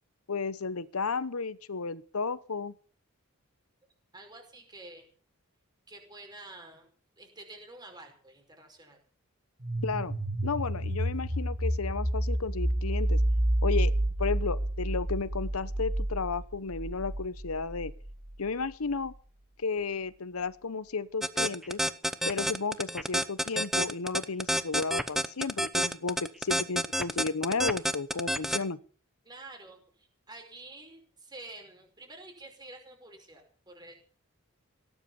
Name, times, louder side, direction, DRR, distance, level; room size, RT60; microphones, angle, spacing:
voice 1, 0.3-2.7 9.8-10.1 10.4-13.2 13.6-13.9 14.2-17.9 18.4-19.1 19.6-21.8 22.3-28.8, left 4 dB, 85° left, 17 dB, 0.9 m, -33 dB
voice 2, 4.1-5.0 5.9-6.9 7.2-9.0 29.3-33.9, right 2 dB, 20° right, 3 dB, 5.2 m, -49 dB
sound 1, 9.6-18.3, right 1 dB, 40° right, 2.1 m, -29 dB
sound 2, 21.2-28.6, equal, ahead, 0.8 m, -28 dB
18.0 x 10.5 x 7.0 m, 0.43 s
head